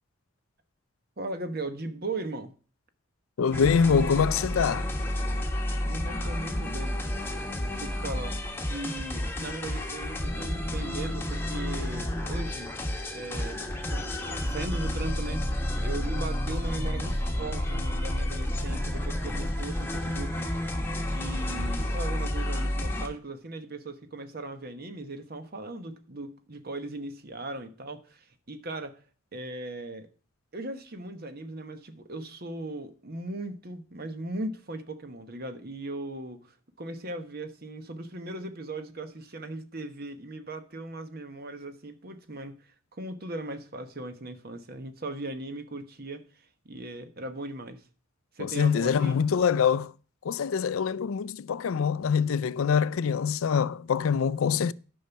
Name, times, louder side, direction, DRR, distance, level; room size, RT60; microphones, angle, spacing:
voice 1, 1.2-2.5 5.8-7.0 7.7-8.4 8.7-12.7 13.1-13.7 13.9-29.0 29.3-30.1 30.5-42.5 42.9-46.2 46.6-47.8 48.4-49.2, right 2 dB, 45° right, 1.1 m, -38 dB
voice 2, 3.4-4.9 48.4-49.9 50.2-54.7, left 6 dB, 80° left, 0.4 m, -24 dB
sound 1, 3.5-23.1, left 1 dB, 10° left, 1.3 m, -30 dB
10.5 x 5.6 x 5.7 m
head